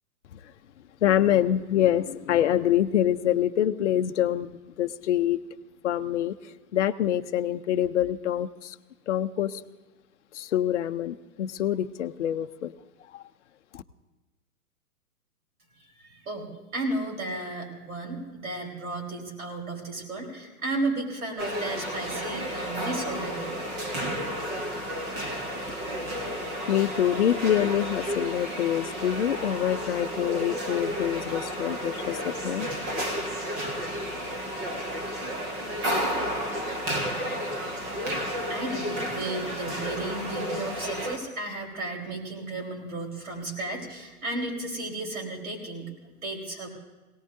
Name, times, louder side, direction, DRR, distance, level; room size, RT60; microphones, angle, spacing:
voice 1, 1.0-5.4 5.8-6.4 6.7-8.8 9.1-9.6 10.3-12.7 13.1-13.2 13.7-13.8 26.7-32.7, left 11 dB, 50° left, 10 dB, 0.7 m, -25 dB
voice 2, 15.8-23.6 38.5-46.7, right 2 dB, 65° right, 0 dB, 4.3 m, -34 dB
sound 1, 21.4-41.2, equal, 10° right, 0.5 m, -32 dB
23.0 x 18.0 x 2.7 m, 1.2 s
figure-of-eight pair, 120°, 46 cm